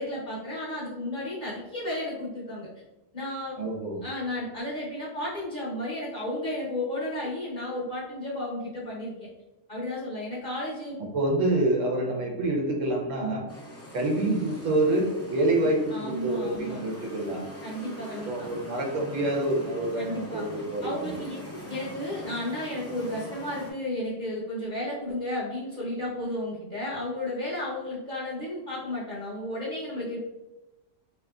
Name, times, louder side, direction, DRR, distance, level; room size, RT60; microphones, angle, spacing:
voice 1, 0.0-2.7 3.1-3.5 4.0-9.3 9.7-10.9 15.9-16.8 17.6-18.5 20.0-20.5 20.8-30.2, left 1 dB, 45° left, -7 dB, 1.0 m, -33 dB
voice 2, 3.6-4.0 11.1-13.5 13.9-17.4 18.3-21.1, right 2 dB, 80° right, -1 dB, 1.0 m, -27 dB
sound 1, 13.5-23.7, right 1 dB, 15° left, 0.6 m, -42 dB
3.6 x 2.8 x 2.2 m, 1.0 s
omnidirectional pair, 1.3 m